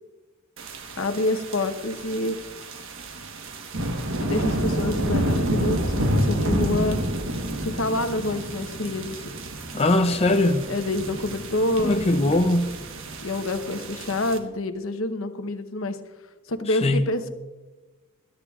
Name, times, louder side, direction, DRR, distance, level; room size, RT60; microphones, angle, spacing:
sound 1, 0.6-14.4, right 1 dB, 75° right, 1.3 m, -29 dB
voice 1, 1.0-2.4 4.2-7.0 7.6-9.2 10.7-12.3 13.2-16.0 16.5-17.3, left 2 dB, 85° left, 1.0 m, -27 dB
voice 2, 9.7-10.7 11.8-12.8 16.7-17.1, left 1 dB, 30° left, 0.5 m, -21 dB
20.5 x 13.0 x 2.4 m
head